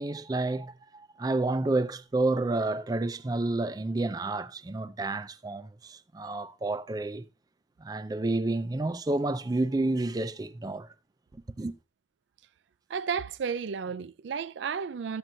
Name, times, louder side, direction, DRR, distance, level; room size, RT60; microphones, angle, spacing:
voice 1, 0.0-7.3 7.8-10.9 11.6-11.7, right 2 dB, 20° right, 0.4 m, -30 dB
voice 2, 12.9-15.2, right 6 dB, 85° right, 0.4 m, -32 dB
13.0 x 7.5 x 2.6 m
head